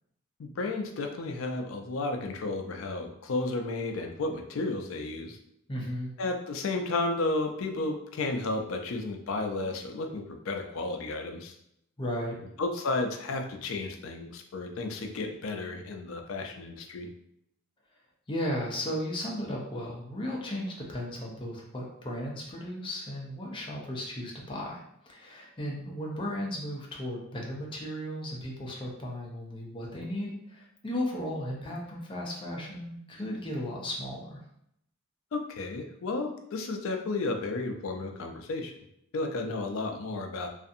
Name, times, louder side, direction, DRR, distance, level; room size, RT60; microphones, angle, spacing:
voice 1, 0.4-5.4 6.2-11.6 12.6-17.1 35.3-38.7 39.1-40.5, left 2 dB, 75° left, 4 dB, 0.4 m, -33 dB
voice 2, 5.7-6.1 12.0-12.4 18.3-34.4, equal, 25° left, -2 dB, 0.5 m, -35 dB
2.6 x 2.5 x 2.5 m, 0.76 s
head